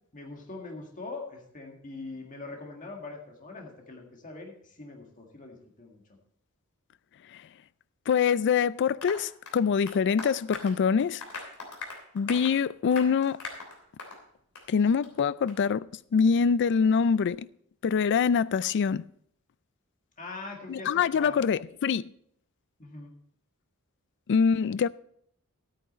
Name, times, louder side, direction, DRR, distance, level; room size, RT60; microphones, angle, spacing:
voice 1, 0.1-6.0 20.2-21.4 22.8-23.2, left 3 dB, 35° left, 1.9 m, -42 dB
voice 2, 8.1-11.2 12.1-13.4 14.7-17.5 17.8-19.1 20.7-22.1 24.3-24.9, left 6 dB, 55° left, 0.4 m, -24 dB
Applause, 9.0-14.2 14.5-14.7 15.0-15.1 15.5-15.6, left 3 dB, 75° left, 3.3 m, -41 dB
13.0 x 9.3 x 4.2 m
head